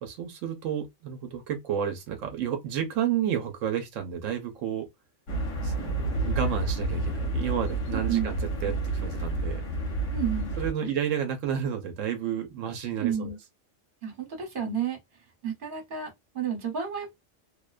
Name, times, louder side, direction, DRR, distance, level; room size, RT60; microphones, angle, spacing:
voice 1, 0.0-4.9 5.6-9.6 10.6-13.3, right 8 dB, 85° right, 1.0 m, -31 dB
sound 1, 5.3-10.7, right 2 dB, 70° left, 1.1 m, -29 dB
voice 2, 7.9-8.3 10.1-10.6 10.8-10.9 12.9-13.4 14.0-15.0 15.4-17.1, right 8 dB, 45° right, 1.2 m, -31 dB
2.6 x 2.1 x 2.3 m
omnidirectional pair, 1.3 m